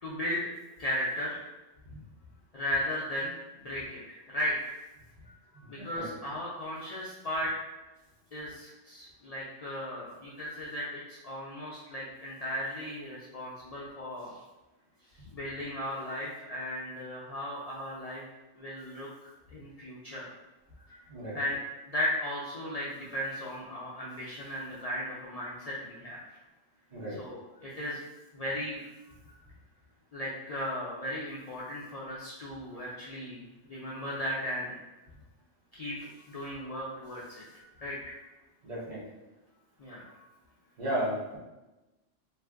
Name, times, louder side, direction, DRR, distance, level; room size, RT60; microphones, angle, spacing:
voice 1, 0.0-0.5 0.8-1.5 2.5-4.7 5.3-7.5 8.3-14.4 15.3-18.2 18.6-20.3 20.9-21.0 21.3-21.6 21.9-26.2 27.2-28.0 28.3-28.8 29.3-29.4 30.1-33.4 33.7-34.8 35.7-38.2 39.8-40.3, left 1 dB, 80° left, -6 dB, 0.3 m, -36 dB
voice 2, 5.6-6.1 21.1-21.4 26.9-27.2 38.6-39.0 40.8-41.4, right 1 dB, 40° right, -6 dB, 0.9 m, -34 dB
2.5 x 2.5 x 3.4 m, 1.1 s
omnidirectional pair, 1.3 m